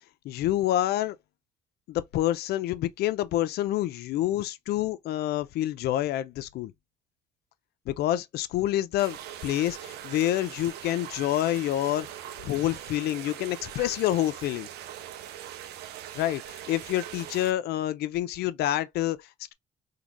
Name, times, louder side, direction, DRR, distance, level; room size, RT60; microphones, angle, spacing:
voice 1, 0.2-1.2 1.9-6.7 7.9-12.1 12.4-14.7 16.1-19.5, left 13 dB, 70° left, 0.5 m, -28 dB
sound 1, 9.0-17.5, right 11 dB, 75° right, 0.6 m, -41 dB
3.8 x 2.2 x 2.9 m
cardioid pair, 110°, 17 cm